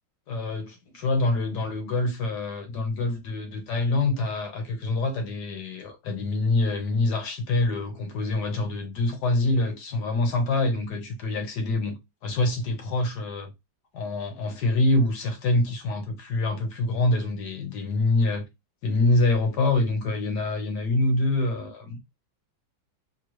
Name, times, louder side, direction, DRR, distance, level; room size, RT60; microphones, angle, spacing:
voice 1, 0.3-13.5 13.9-18.4 18.8-22.0, left 2 dB, 65° left, 1.3 m, -25 dB
3.8 x 2.2 x 3.0 m
omnidirectional pair, 2.2 m